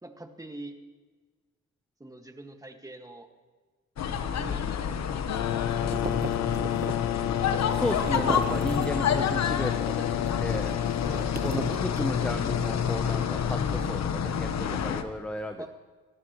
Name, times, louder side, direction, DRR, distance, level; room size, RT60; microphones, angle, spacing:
voice 1, 0.0-0.8 2.0-3.3 4.4-6.1 11.0-11.3 15.6-15.7, right 2 dB, 10° right, 4 dB, 1.9 m, -44 dB
sound 1, 4.0-15.0, left 7 dB, 60° left, 1.2 m, -29 dB
sound 2, 5.3-13.8, left 13 dB, 90° left, 0.5 m, -31 dB
sound 3, 5.3-9.2 9.5-12.6, right 4 dB, 30° right, 1.4 m, -38 dB
voice 2, 7.7-10.1 10.4-10.7 11.4-15.7, left 1 dB, 5° left, 6 dB, 0.9 m, -34 dB
29.0 x 14.0 x 3.2 m, 1.4 s
cardioid pair, 90°, 30 cm